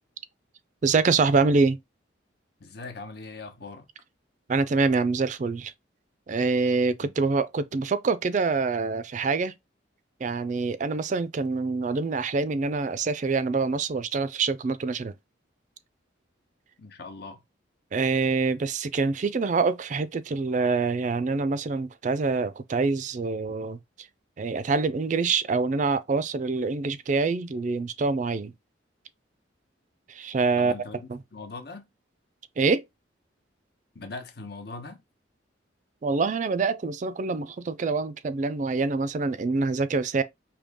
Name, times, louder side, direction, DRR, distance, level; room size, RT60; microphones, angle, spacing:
voice 1, 0.8-1.8 4.5-5.7 6.3-9.5 10.2-15.1 17.9-24.1 24.4-28.5 30.1-30.7 31.1-31.2 32.6-32.8 36.0-40.2, right 4 dB, 40° right, 0.4 m, -25 dB
voice 2, 2.6-3.9 7.0-7.1 16.8-17.4 30.6-31.8 33.9-35.0, left 3 dB, 55° left, 1.0 m, -40 dB
5.3 x 2.8 x 3.5 m
head